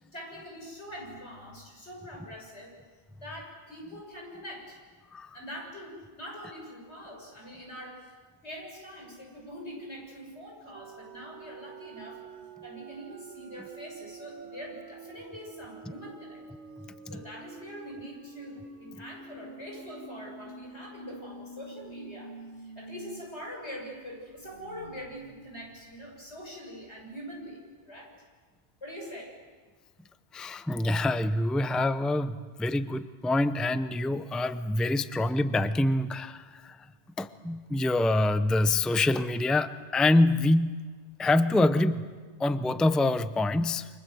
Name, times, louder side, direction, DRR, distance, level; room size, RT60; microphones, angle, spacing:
voice 1, 0.0-2.7 3.2-4.8 5.3-8.1 8.4-12.3 12.6-16.4 17.1-28.1 28.8-29.4, equal, 85° left, 0 dB, 7.1 m, -43 dB
sound 1, 10.7-23.2 23.6-23.7 24.0-26.7, right 3 dB, 85° right, 1.5 m, -48 dB
voice 2, 30.3-36.8 37.2-40.8 41.2-42.1 42.4-43.9, left 2 dB, ahead, 12 dB, 0.6 m, -26 dB
29.0 x 25.5 x 7.8 m, 1.5 s
omnidirectional pair, 1.1 m